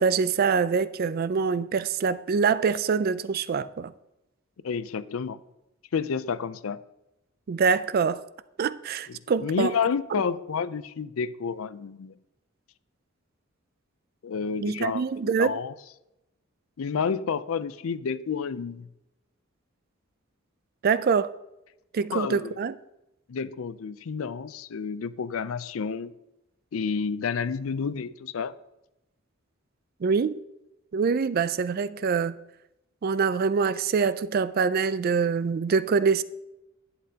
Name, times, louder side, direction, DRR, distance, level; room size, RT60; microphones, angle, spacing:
voice 1, 0.0-3.9 7.5-8.2 8.6-9.7 14.6-15.6 20.8-21.3 21.9-22.7 30.0-30.4 30.9-32.4 33.0-36.2, right 5 dB, 45° right, 0.3 m, -25 dB
voice 2, 4.6-5.4 5.9-6.8 9.1-12.2 14.2-15.7 16.8-18.9 22.1-22.5 23.3-26.1 26.7-28.5, left 6 dB, 85° left, 0.5 m, -30 dB
11.5 x 8.5 x 2.8 m
head